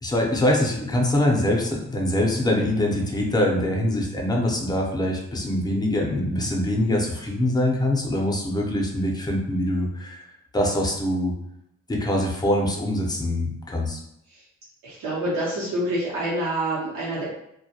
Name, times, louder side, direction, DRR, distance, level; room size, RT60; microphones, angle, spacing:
voice 1, 0.0-10.3 10.5-11.3 11.9-14.0, left 1 dB, 15° left, 0 dB, 0.6 m, -24 dB
voice 2, 14.8-17.2, right 1 dB, 85° right, -8 dB, 0.9 m, -27 dB
2.2 x 2.2 x 2.7 m, 0.79 s
cardioid pair, 90°, 30 cm